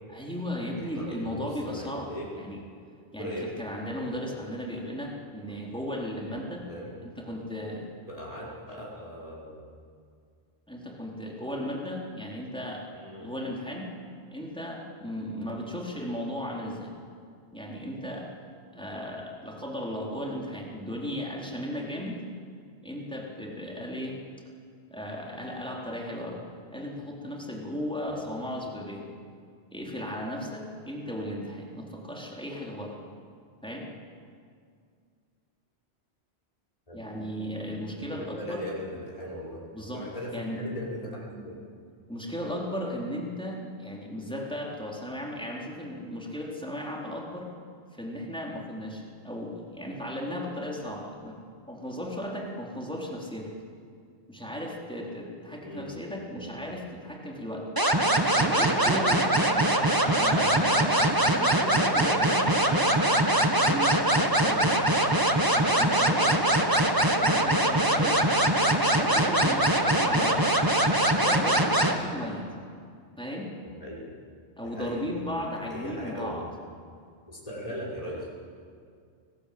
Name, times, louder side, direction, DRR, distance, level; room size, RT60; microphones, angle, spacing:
voice 1, 0.1-2.1 2.4-2.6 3.1-6.7 7.0-7.9 10.7-12.9 13.2-13.9 14.3-16.9 17.5-18.3 18.7-22.2 22.8-24.2 24.9-26.4 26.7-29.1 29.7-33.0 33.6-33.9 36.9-38.6 39.7-40.1 40.3-40.6 42.1-47.5 47.9-51.4 51.6-53.5 54.3-57.7 58.3-59.7 60.2-62.9 63.6-63.9 64.3-64.8 65.5-66.4 67.2-68.2 68.9-70.5 71.1-72.5 73.2-73.5 74.6-76.4, equal, 5° left, -1 dB, 4.0 m, -36 dB
voice 2, 0.8-2.3 3.2-3.5 4.1-4.2 5.5-5.6 6.7-6.9 8.1-9.7 12.9-13.3 28.1-28.3 36.9-37.0 38.1-39.6 39.9-41.6 55.6-55.9 56.3-56.5 73.8-74.1 74.6-75.0 75.4-76.5 77.3-78.3, equal, 35° left, -5 dB, 5.6 m, -39 dB
sound 1, 57.8-71.9, right 1 dB, 20° right, 1.8 m, -23 dB
29.0 x 20.0 x 8.7 m, 2.2 s
omnidirectional pair, 1.1 m